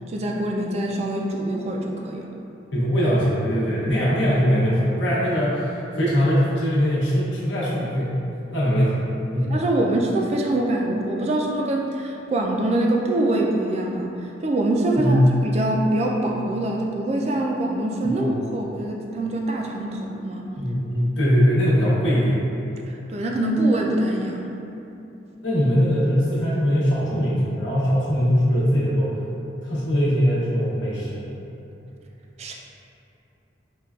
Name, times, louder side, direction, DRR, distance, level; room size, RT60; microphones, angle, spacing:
voice 1, 0.1-2.3 9.3-14.1 14.4-20.5 23.1-24.5 32.4-32.5, right 1 dB, 35° right, 0 dB, 0.3 m, -24 dB
voice 2, 2.7-8.1 8.5-9.0 9.3-9.5 15.0-15.3 18.1-18.3 20.5-22.4 25.4-29.1 29.6-31.3, equal, 85° left, -8 dB, 0.8 m, -21 dB
5.1 x 2.2 x 2.3 m, 2.9 s
head